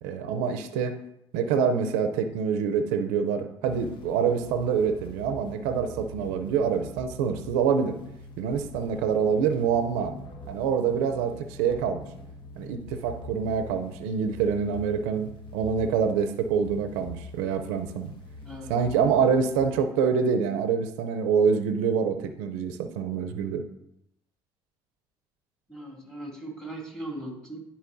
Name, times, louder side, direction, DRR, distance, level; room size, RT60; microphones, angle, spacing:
voice 1, 0.0-1.0 1.3-8.0 8.4-10.1 10.5-12.0 12.6-18.1 18.7-23.6, right 6 dB, 90° right, 7 dB, 0.5 m, -26 dB
sound 1, 3.7-19.6, left 2 dB, 50° left, 1.2 m, -44 dB
voice 2, 18.4-18.7 25.7-27.6, right 1 dB, 5° left, -3 dB, 2.5 m, -39 dB
11.0 x 4.2 x 2.6 m, 0.80 s
supercardioid pair, 90°, 10 cm